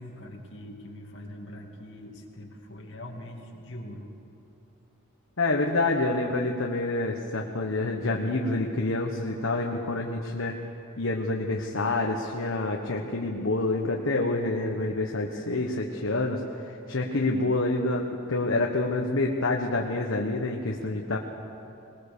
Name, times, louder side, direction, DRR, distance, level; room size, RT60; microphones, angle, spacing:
voice 1, 0.0-4.1, left 1 dB, 55° left, -1 dB, 2.6 m, -42 dB
voice 2, 5.4-10.6 11.0-21.2, left 2 dB, 70° left, 1 dB, 1.3 m, -27 dB
21.0 x 20.5 x 6.9 m, 2.8 s
head